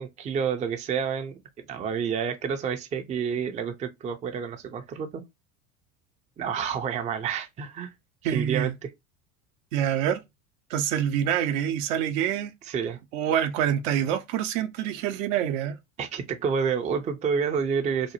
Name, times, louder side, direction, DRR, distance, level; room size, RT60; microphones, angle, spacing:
voice 1, 0.0-5.2 6.4-7.9 8.2-8.9 12.6-13.0 16.0-18.1, right 6 dB, 20° right, 0.4 m, -29 dB
voice 2, 8.2-8.7 9.7-10.2 10.7-12.5 13.1-15.8, right 9 dB, 65° right, 0.6 m, -26 dB
2.9 x 2.0 x 2.8 m
hypercardioid pair, 80°, 41 cm